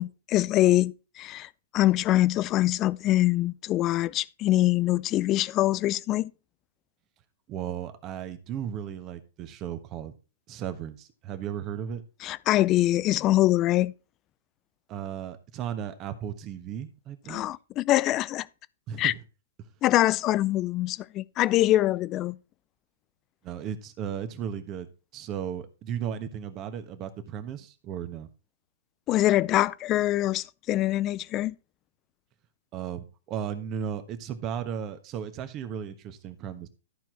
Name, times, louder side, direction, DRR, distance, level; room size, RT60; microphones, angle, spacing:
voice 1, 0.0-6.3 12.2-13.9 17.3-18.5 19.0-19.1 19.8-22.4 29.1-31.6, left 15 dB, 30° left, 0.4 m, -24 dB
voice 2, 7.5-10.1 10.5-12.0 14.9-17.4 18.9-19.1 23.4-28.3 32.7-36.7, right 9 dB, 30° right, 1.3 m, -35 dB
13.5 x 4.6 x 4.5 m
hypercardioid pair, 130°, 0 cm